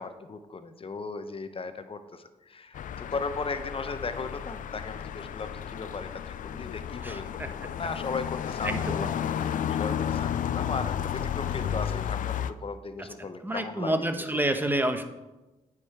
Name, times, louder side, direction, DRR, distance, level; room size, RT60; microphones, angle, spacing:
voice 1, 0.0-9.1 9.4-13.9, left 4 dB, 40° left, 10 dB, 0.8 m, -36 dB
sound 1, 2.7-12.5, left 9 dB, 70° left, 0.4 m, -32 dB
voice 2, 7.0-7.5 8.6-9.1 13.0-15.0, right 1 dB, 15° right, 7 dB, 1.0 m, -29 dB
9.0 x 5.0 x 4.4 m, 1.1 s
cardioid pair, 55°, 14 cm